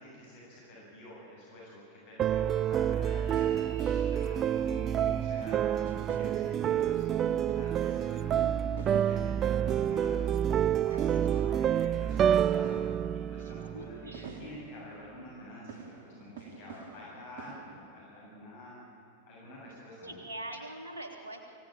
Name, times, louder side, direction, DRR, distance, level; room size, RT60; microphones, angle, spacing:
voice 1, 0.0-10.3 10.8-18.8 19.2-20.2, left 1 dB, 50° left, -5 dB, 7.5 m, -48 dB
sound 1, 2.2-14.3, right 9 dB, 30° right, 0.4 m, -28 dB
sound 2, 3.1-17.6, right 4 dB, 55° right, 3.2 m, -49 dB
voice 2, 10.9-11.5 13.4-14.3 20.0-21.4, right 1 dB, 75° right, 1 dB, 3.3 m, -44 dB
24.5 x 17.0 x 8.9 m, 2.8 s
figure-of-eight pair, 90°, 0 cm